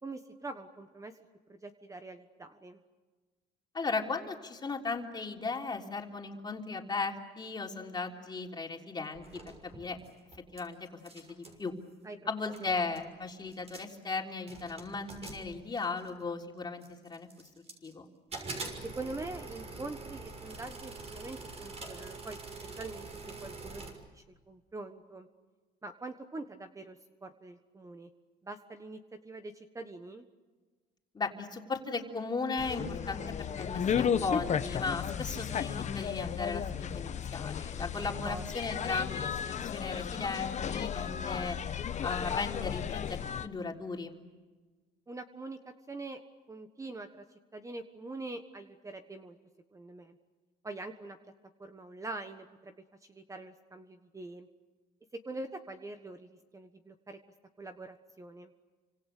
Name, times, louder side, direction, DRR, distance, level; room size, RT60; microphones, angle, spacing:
voice 1, 0.0-1.1 1.5-2.8 12.0-12.2 12.6-12.9 18.9-22.4 22.8-23.1 23.4-25.3 25.8-28.1 28.4-30.3 38.0-38.6 45.1-46.2 46.5-47.2 47.5-49.4 49.7-50.2 50.6-51.2 51.6-52.7 53.1-54.5 55.2-57.2 57.6-58.5, right 2 dB, 20° right, 7 dB, 1.4 m, -44 dB
voice 2, 3.7-10.0 10.5-10.9 11.1-11.7 12.3-16.8 17.1-17.3 17.8-18.1 31.1-41.6 42.0-44.2, left 4 dB, 25° left, 2 dB, 3.5 m, -36 dB
sound 1, 9.1-10.6 10.9-11.6 12.3-12.4 12.5-13.1 13.5-14.0 14.5-16.2 16.8-17.9 18.3-23.9, right 3 dB, 40° right, 6.3 m, -45 dB
sound 2, 32.6-43.5, left 8 dB, 45° left, 1.3 m, -34 dB
29.5 x 26.0 x 6.8 m, 1.3 s
cardioid pair, 110°, 17 cm